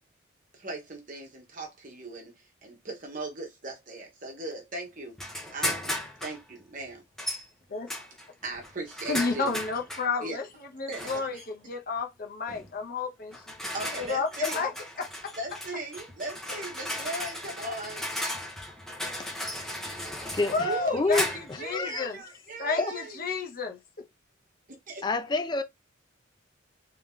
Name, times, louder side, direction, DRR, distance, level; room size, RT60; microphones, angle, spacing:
voice 1, 0.5-5.2 5.5-5.9 6.2-7.0 8.4-9.5 10.2-10.4 10.9-11.5 13.7-14.7 15.4-18.1 20.6-23.2 24.9-25.0, right 2 dB, 40° right, 1.3 m, -38 dB
sound 1, 5.2-6.4 7.2-7.4 7.9-10.1 10.9-11.4 12.5-12.7 13.3-21.6, left 1 dB, ahead, 1.0 m, -36 dB
voice 2, 9.1-10.5 10.7-13.4 14.0-14.7 15.0-15.3 20.5-22.2 22.6-24.1, left 4 dB, 45° left, 0.8 m, -31 dB
voice 3, 20.3-21.3 21.7-22.1 22.8-22.9 25.0-25.6, left 3 dB, 20° left, 0.4 m, -28 dB
3.4 x 2.9 x 3.6 m
head